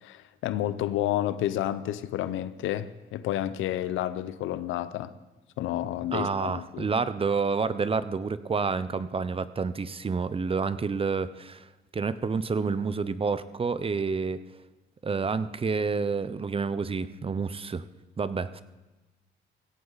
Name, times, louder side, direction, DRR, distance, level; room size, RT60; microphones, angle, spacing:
voice 1, 0.0-5.1 5.6-6.9, left 12 dB, 90° left, 14 dB, 0.8 m, -30 dB
voice 2, 6.1-11.7 11.9-14.4 15.0-17.8 18.2-18.6, right 4 dB, 30° right, 14 dB, 0.7 m, -29 dB
16.5 x 16.5 x 4.1 m, 1.1 s
cardioid pair, 90°, 20 cm